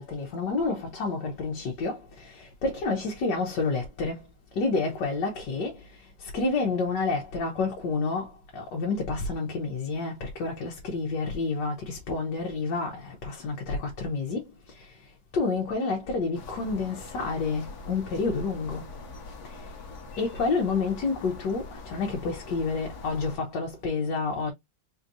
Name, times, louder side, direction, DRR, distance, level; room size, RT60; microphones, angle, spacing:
voice 1, 0.0-4.2 4.5-15.1 15.3-18.8 19.4-19.7 20.2-24.5, left 4 dB, 80° left, 1.6 m, -29 dB
sound 1, 16.3-23.4, left 3 dB, 65° left, 1.5 m, -43 dB
4.4 x 2.9 x 2.5 m
omnidirectional pair, 1.9 m